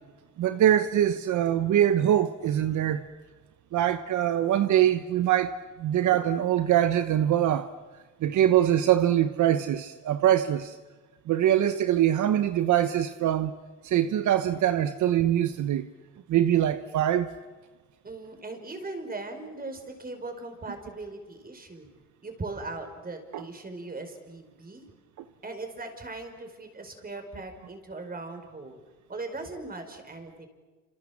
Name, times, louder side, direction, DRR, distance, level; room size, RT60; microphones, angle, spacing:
voice 1, 0.4-3.0 3.7-7.7 8.2-10.8 11.3-13.5 13.8-15.9 16.3-17.3 23.3-23.4, right 11 dB, 75° right, 1.1 m, -23 dB
voice 2, 18.0-21.9 22.2-24.9 25.4-28.8 29.1-30.5, right 3 dB, 30° right, 5.4 m, -39 dB
29.0 x 27.0 x 7.4 m
cardioid pair, 90°, 30 cm